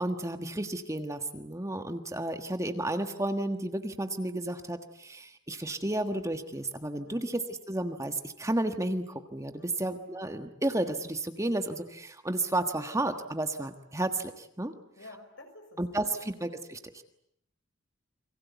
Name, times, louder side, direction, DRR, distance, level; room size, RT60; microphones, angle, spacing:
voice 1, 0.0-14.7 15.8-17.0, right 1 dB, 15° right, 7 dB, 1.4 m, -32 dB
voice 2, 9.5-9.9 15.0-16.3, left 2 dB, 65° left, 6 dB, 6.5 m, -51 dB
30.0 x 23.0 x 8.2 m, 0.73 s
head